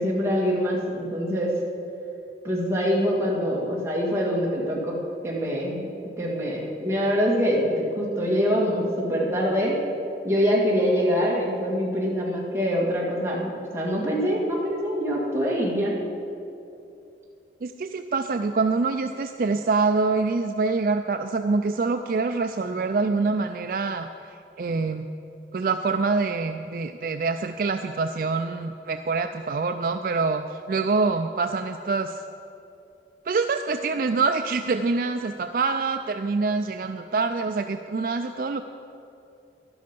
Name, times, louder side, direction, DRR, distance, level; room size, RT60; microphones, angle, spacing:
voice 1, 0.0-1.5 2.4-5.0 5.2-5.9 6.2-9.8 10.2-15.9, equal, 15° right, -5 dB, 2.1 m, -24 dB
voice 2, 17.6-25.1 25.5-32.2 33.3-38.6, right 4 dB, 50° right, 7 dB, 0.4 m, -25 dB
12.0 x 11.5 x 5.3 m, 2.7 s
head